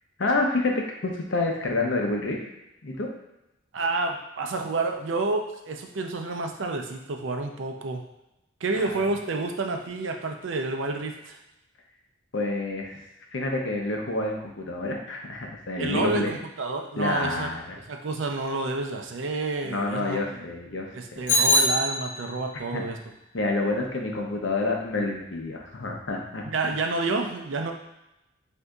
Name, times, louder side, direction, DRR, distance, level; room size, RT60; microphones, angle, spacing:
voice 1, 0.2-2.4 2.8-3.1 8.7-9.0 12.3-13.0 13.3-16.4 17.0-17.8 19.6-20.9 22.7-22.8 23.3-26.4, left 2 dB, 75° left, 1 dB, 0.7 m, -28 dB
voice 2, 3.7-8.0 8.6-11.4 15.8-17.5 17.9-20.2 20.9-23.0 26.5-27.7, right 3 dB, 80° right, 4 dB, 0.5 m, -29 dB
Bicycle bell, 21.3-22.5, left 1 dB, 40° left, 1.0 m, -23 dB
6.3 x 2.7 x 2.3 m, 0.90 s
head